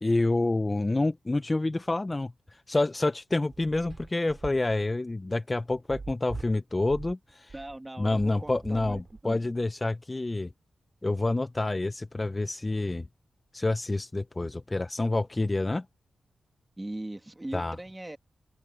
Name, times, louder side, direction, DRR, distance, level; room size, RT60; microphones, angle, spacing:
voice 1, 0.0-7.6 8.0-10.5 11.0-13.1 13.5-15.9 17.5-17.8, left 2 dB, 20° left, 0.3 m, -28 dB
sound 1, 3.0-9.6, right 4 dB, 35° right, 2.4 m, -43 dB
voice 2, 7.5-9.5 16.8-18.2, right 1 dB, 15° right, 1.8 m, -40 dB
wide cardioid pair, 160°, 0 cm